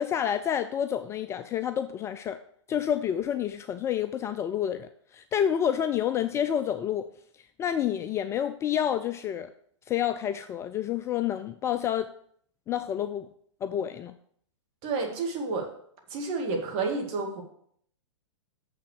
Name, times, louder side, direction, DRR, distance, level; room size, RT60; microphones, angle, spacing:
voice 1, 0.0-2.4 2.7-7.1 7.6-9.5 9.9-12.1 12.7-13.3 13.6-14.1, left 9 dB, 20° left, 10 dB, 0.3 m, -29 dB
voice 2, 14.8-15.7 16.1-17.4, right 4 dB, 40° right, 1 dB, 2.3 m, -30 dB
6.9 x 5.8 x 6.7 m, 0.64 s
hypercardioid pair, 115°, 16 cm